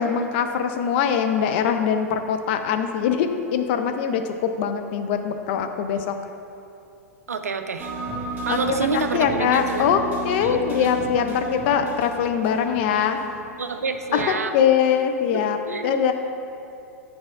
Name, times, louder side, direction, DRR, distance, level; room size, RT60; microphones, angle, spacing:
voice 1, 0.0-6.1 8.5-8.6 8.9-13.2 14.1-15.6 15.8-16.1, left 7 dB, 45° left, 6 dB, 0.4 m, -22 dB
voice 2, 7.3-7.9 8.4-9.9 10.4-10.9 11.8-11.9 13.6-14.6 15.3-16.0, right 4 dB, 75° right, 8 dB, 0.4 m, -28 dB
sound 1, 7.8-14.3, right 2 dB, 20° right, 1.0 m, -33 dB
9.3 x 4.7 x 2.4 m, 2.7 s
figure-of-eight pair, 95°, 8 cm